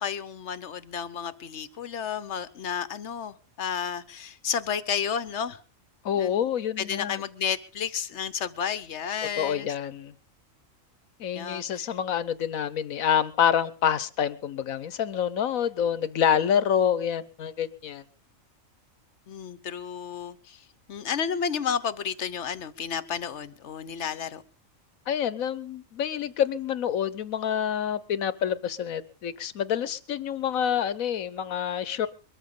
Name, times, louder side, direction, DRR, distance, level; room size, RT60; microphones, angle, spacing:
voice 1, 0.0-5.6 6.2-6.5 6.8-9.7 11.3-11.9 19.3-24.4, left 7 dB, 60° left, 14 dB, 1.2 m, -32 dB
voice 2, 6.0-7.2 9.4-10.1 11.2-18.0 25.1-32.1, left 9 dB, 80° left, 16 dB, 1.4 m, -27 dB
23.0 x 14.0 x 3.8 m, 0.35 s
omnidirectional pair, 1.4 m